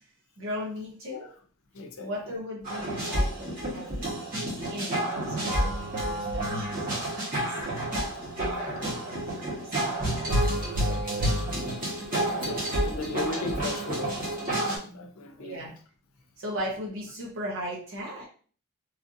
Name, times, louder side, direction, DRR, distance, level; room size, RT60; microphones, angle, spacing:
voice 1, 0.4-1.3 2.0-4.1 4.7-7.3 7.8-9.7 10.4-11.5 15.4-15.8 16.4-18.3, equal, 65° right, 0.7 m, -38 dB
voice 2, 1.7-2.1 10.5-10.8 12.2-15.6, left 3 dB, 80° left, 0.5 m, -37 dB
sound 1, 2.6-14.8, right 1 dB, 40° right, 1.2 m, -29 dB
3.2 x 2.6 x 2.5 m
head